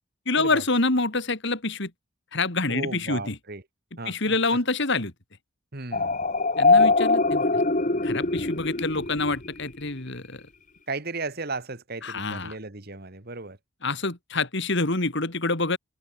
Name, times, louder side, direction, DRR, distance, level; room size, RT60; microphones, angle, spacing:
voice 1, 0.3-1.9 2.3-3.4 4.1-5.1 6.6-7.6 8.0-10.4 12.0-12.5 13.8-15.8, left 3 dB, 55° left, 2.7 m, -26 dB
voice 2, 2.7-3.6 4.0-4.6 5.7-6.2 10.9-13.6, right 3 dB, 45° right, 2.1 m, -35 dB
sound 1, 5.9-9.7, left 3 dB, 35° left, 1.8 m, -22 dB
head